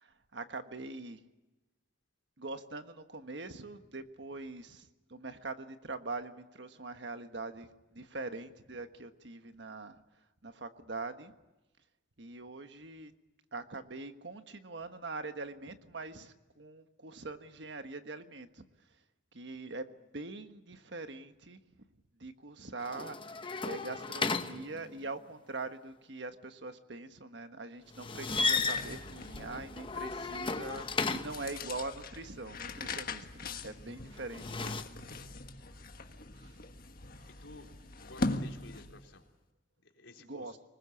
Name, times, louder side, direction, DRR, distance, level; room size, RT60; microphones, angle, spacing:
voice 1, 0.0-1.2 2.4-10.0 10.4-11.3 12.2-13.1 13.5-18.6 19.3-21.6 22.2-23.4 23.6-34.8 36.4-36.6 40.2-40.6, right 3 dB, 65° right, 8 dB, 1.4 m, -43 dB
sound 1, 22.8-25.2 27.9-31.5 34.2-34.8, left 4 dB, 25° left, 1.0 m, -35 dB
sound 2, 27.9-39.1, left 2 dB, 50° left, 1.6 m, -42 dB
voice 2, 37.4-39.3 39.8-40.6, left 2 dB, 80° left, 2 dB, 3.8 m, -53 dB
24.5 x 20.5 x 8.5 m, 1.1 s
head